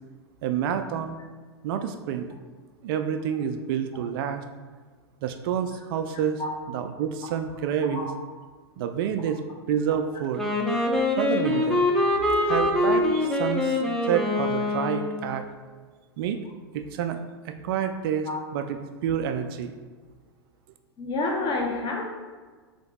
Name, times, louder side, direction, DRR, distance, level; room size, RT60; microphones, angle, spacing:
voice 1, 0.4-1.2 1.6-2.3 2.8-4.4 5.2-6.4 6.7-8.1 8.8-9.4 9.7-10.4 11.2-11.9 12.4-13.8 14.1-15.4 16.2-16.4 16.7-19.8, right 8 dB, 55° right, 7 dB, 0.4 m, -28 dB
Wind instrument woodwind instrument, 10.4-15.4, left 2 dB, 5° left, 0.6 m, -24 dB
voice 2, 21.0-22.0, left 3 dB, 35° left, 0 dB, 1.0 m, -28 dB
3.4 x 2.9 x 4.1 m, 1.4 s
hypercardioid pair, 105°, 14 cm